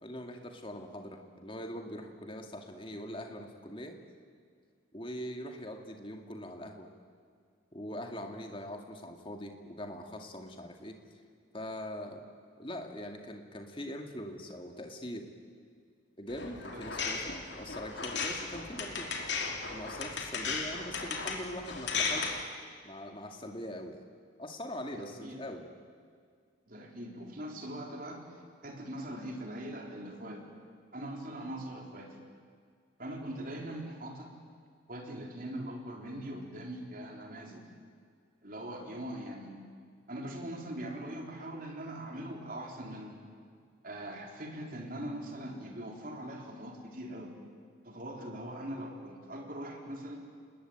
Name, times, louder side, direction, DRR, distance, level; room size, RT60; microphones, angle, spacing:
voice 1, 0.0-4.0 4.9-6.9 7.7-11.0 11.5-12.2 12.6-15.3 16.2-19.1 19.7-22.4 22.8-24.0 24.4-25.7, equal, 25° left, 4 dB, 2.4 m, -42 dB
sound 1, 16.3-22.4, left 4 dB, 60° left, 3.1 m, -36 dB
voice 2, 24.9-25.4 26.7-30.5 30.9-32.2 33.0-34.3 34.9-37.6 38.4-39.6 40.1-43.2 43.8-47.3 47.8-50.2, right 1 dB, 45° right, 1 dB, 4.0 m, -41 dB
29.0 x 20.5 x 9.0 m, 2.1 s
head